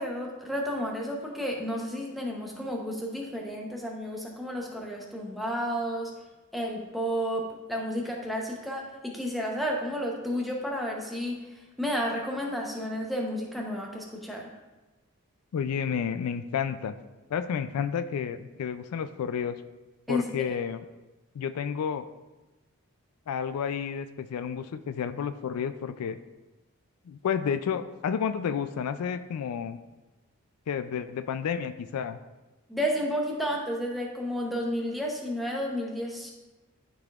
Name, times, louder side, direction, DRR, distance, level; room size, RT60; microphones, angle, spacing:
voice 1, 0.0-6.1 6.5-11.4 11.8-14.5 20.1-20.5 32.7-36.3, equal, ahead, -2 dB, 0.8 m, -31 dB
voice 2, 15.5-17.0 17.3-19.6 20.1-20.8 21.3-22.1 23.3-26.2 27.1-29.8 30.7-32.2, left 7 dB, 85° left, 11 dB, 0.3 m, -31 dB
11.5 x 4.0 x 2.4 m, 1.1 s
head